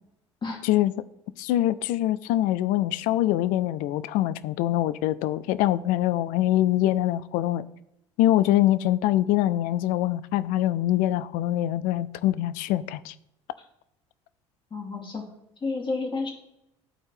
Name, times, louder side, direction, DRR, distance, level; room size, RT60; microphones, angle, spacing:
voice 1, 1.4-7.6 8.2-13.1, left 14 dB, 65° left, 16 dB, 0.5 m, -24 dB
voice 2, 14.7-15.2 15.6-16.3, left 3 dB, 30° left, 0 dB, 2.4 m, -30 dB
12.0 x 4.4 x 3.2 m, 0.81 s
hypercardioid pair, 65°, 15 cm